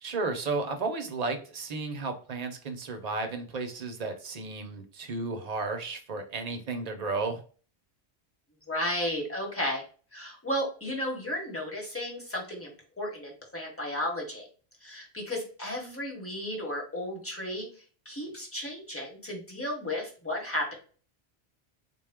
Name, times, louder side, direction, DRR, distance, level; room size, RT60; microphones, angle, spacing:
voice 1, 0.0-7.4, right 3 dB, 45° right, 5 dB, 0.6 m, -33 dB
voice 2, 8.7-9.8 10.1-14.5 14.8-17.7 18.0-20.7, left 1 dB, 15° left, -1 dB, 1.0 m, -34 dB
3.9 x 2.3 x 3.5 m, 0.39 s
omnidirectional pair, 1.1 m